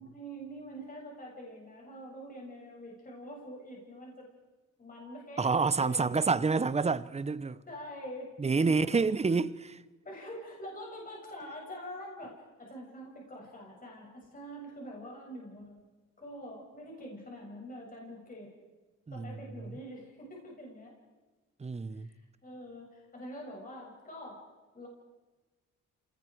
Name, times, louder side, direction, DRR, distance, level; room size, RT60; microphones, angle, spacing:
voice 1, 0.0-4.3 4.8-6.2 7.7-8.3 8.6-9.1 10.0-15.7 16.2-18.5 19.1-20.9 21.9-24.4 24.7-24.9, equal, 30° left, 6.9 m, -45 dB
voice 2, 5.4-7.6 8.4-9.8 19.1-19.4 21.6-22.1, right 4 dB, 20° right, 0.9 m, -28 dB
28.0 x 19.5 x 4.7 m
cardioid pair, 90°, 30 cm